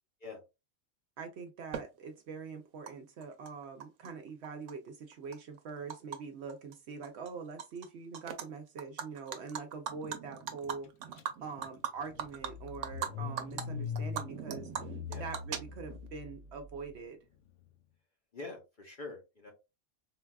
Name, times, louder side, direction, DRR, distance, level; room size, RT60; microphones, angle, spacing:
voice 1, 1.2-10.9 11.4-14.7 15.2-17.2, right 5 dB, 70° right, 5 dB, 0.8 m, -44 dB
Animal, 1.7-1.8 2.9-3.0 3.2-4.1 4.4-6.2 6.5-6.7 7.0-7.9 8.1-8.4 8.8-13.1 13.4-13.6 14.0-16.1, right 8 dB, 90° right, 1.0 m, -39 dB
Car / Engine starting, 11.2-11.3 11.6-16.8, left 6 dB, 80° left, 0.9 m, -42 dB
voice 2, 11.4-11.7 15.1-15.2 18.3-19.5, left 3 dB, 50° left, 2 dB, 0.8 m, -45 dB
3.9 x 2.3 x 2.3 m, 0.25 s
omnidirectional pair, 1.3 m